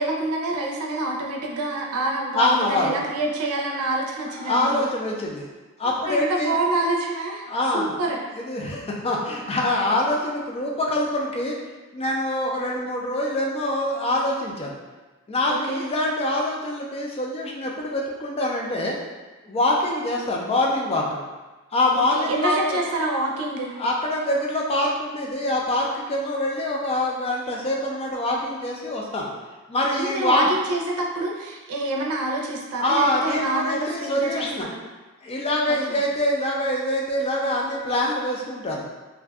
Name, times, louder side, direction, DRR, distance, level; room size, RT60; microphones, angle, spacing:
voice 1, 0.0-4.8 6.1-7.5 7.7-8.2 15.5-15.8 21.9-23.7 30.0-34.8 35.7-36.1, right 2 dB, 85° right, -1 dB, 0.5 m, -27 dB
voice 2, 2.3-3.0 4.4-5.5 5.8-6.5 7.5-7.9 8.4-11.6 11.9-14.8 15.3-19.0 19.4-21.2 21.7-22.8 23.8-29.3 29.7-30.5 32.8-34.7 35.2-38.8, left 1 dB, 25° left, -2 dB, 0.4 m, -24 dB
2.5 x 2.2 x 3.4 m, 1.2 s
head